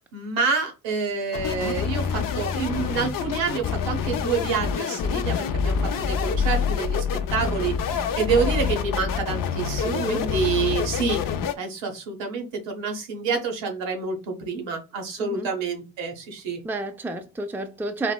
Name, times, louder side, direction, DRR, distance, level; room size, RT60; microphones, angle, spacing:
voice 1, 0.1-11.2 11.6-16.6, right 5 dB, 75° right, 1.0 m, -28 dB
sound 1, 1.3-11.5, left 6 dB, 50° left, 0.5 m, -26 dB
voice 2, 9.8-10.2 15.2-15.5 16.6-18.1, right 2 dB, 5° right, 0.5 m, -30 dB
3.9 x 2.0 x 2.2 m
supercardioid pair, 55°, 44 cm